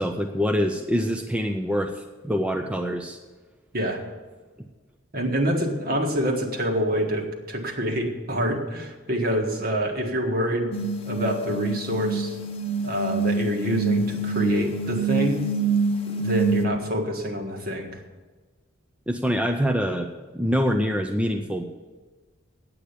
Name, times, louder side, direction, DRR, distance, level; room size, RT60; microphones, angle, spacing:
voice 1, 0.0-3.2 19.1-21.6, equal, 5° right, 3 dB, 0.5 m, -25 dB
voice 2, 5.1-10.7 11.1-12.4 12.8-15.4 16.1-18.0, equal, 45° right, 3 dB, 1.7 m, -26 dB
sound 1, 10.7-16.7, right 4 dB, 30° left, 0.9 m, -26 dB
8.6 x 8.5 x 8.3 m, 1.3 s
head